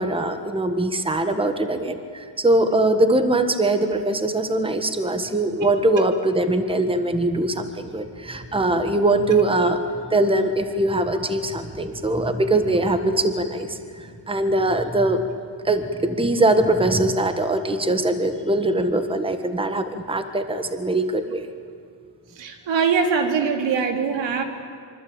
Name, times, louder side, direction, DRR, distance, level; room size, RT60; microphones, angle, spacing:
voice 1, 0.0-9.8 10.1-15.2 15.6-21.5, right 2 dB, 10° right, 9 dB, 1.4 m, -22 dB
voice 2, 22.4-24.4, right 5 dB, 80° right, 5 dB, 3.1 m, -22 dB
25.0 x 24.5 x 8.9 m, 2.2 s
cardioid pair, 135°, 44 cm